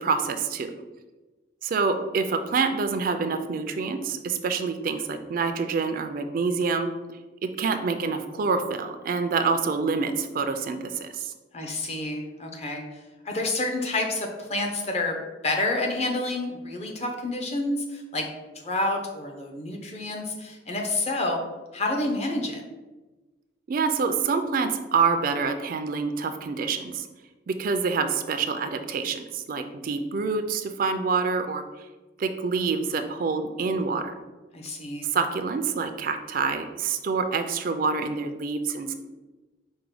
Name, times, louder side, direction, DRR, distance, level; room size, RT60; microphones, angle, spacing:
voice 1, 0.0-0.7 1.6-6.9 7.6-11.3 23.7-27.1 27.5-31.6 32.2-34.1 35.1-38.9, right 4 dB, 50° right, 8 dB, 0.4 m, -26 dB
voice 2, 11.5-13.0 13.2-15.2 15.4-18.3 18.5-21.4 21.7-22.6 34.5-35.1, left 2 dB, 35° left, 2 dB, 0.7 m, -29 dB
4.8 x 2.2 x 4.7 m, 1.2 s
head